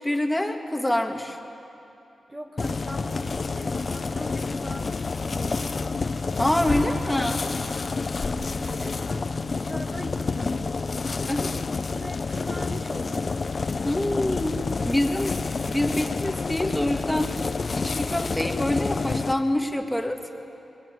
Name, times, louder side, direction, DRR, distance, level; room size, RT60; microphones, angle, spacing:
voice 1, 0.0-1.4 6.4-7.4 11.3-11.5 13.8-17.3 17.7-20.2, left 1 dB, 5° left, 3 dB, 1.9 m, -26 dB
voice 2, 2.3-6.1 8.3-11.3 11.9-13.4, right 1 dB, 20° right, 2 dB, 1.7 m, -41 dB
sound 1, 2.6-19.3, left 4 dB, 45° left, 0.9 m, -29 dB
26.5 x 22.0 x 9.6 m, 2.8 s
wide cardioid pair, 105°, 0 cm